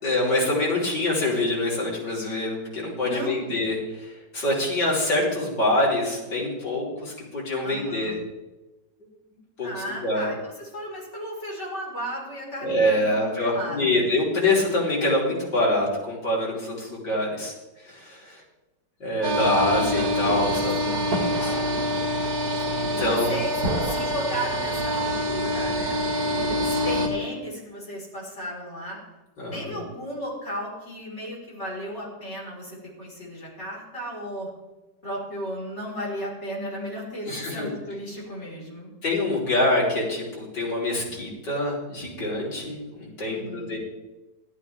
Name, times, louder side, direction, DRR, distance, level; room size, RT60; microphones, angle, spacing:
voice 1, 0.0-8.2 9.6-9.7 10.0-10.2 12.6-17.5 17.8-18.4 19.0-21.6 22.7-23.4 26.6-26.8 29.4-29.8 37.3-37.7 39.0-43.8, left 1 dB, 80° left, -5 dB, 5.0 m, -25 dB
voice 2, 3.0-3.6 7.6-8.1 9.6-14.0 20.8-21.4 22.9-26.0 26.6-29.0 29.5-34.5 35.0-38.9 43.2-43.8, equal, 40° left, -4 dB, 5.2 m, -35 dB
sound 1, 19.2-27.1, equal, 65° right, 2.4 m, -25 dB
15.0 x 13.0 x 3.6 m, 1.1 s
omnidirectional pair, 1.9 m